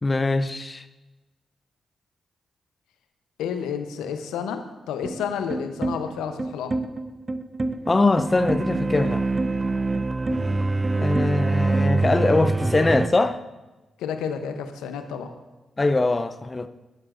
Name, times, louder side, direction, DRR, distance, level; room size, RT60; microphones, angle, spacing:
voice 1, 0.0-0.8 7.9-9.3 11.0-13.4 15.8-16.7, left 2 dB, 30° left, 11 dB, 0.5 m, -22 dB
voice 2, 3.4-6.8 14.0-15.3, left 7 dB, 80° left, 7 dB, 0.7 m, -30 dB
sound 1, 5.0-13.1, right 3 dB, 35° right, 0.5 m, -25 dB
12.0 x 8.9 x 2.5 m, 1.1 s
hypercardioid pair, 40°, 0 cm